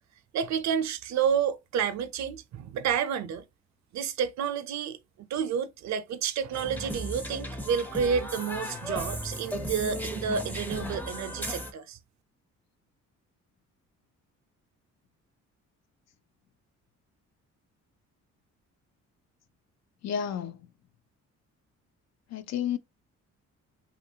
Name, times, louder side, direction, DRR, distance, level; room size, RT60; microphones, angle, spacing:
voice 1, 0.3-3.4 3.9-5.0 5.3-12.0, right 7 dB, 65° right, 0.6 m, -30 dB
sound 1, 6.5-11.7, equal, 5° left, 0.5 m, -35 dB
voice 2, 20.0-20.6 22.3-22.8, left 8 dB, 60° left, 0.4 m, -31 dB
2.8 x 2.4 x 2.7 m
cardioid pair, 90°, 30 cm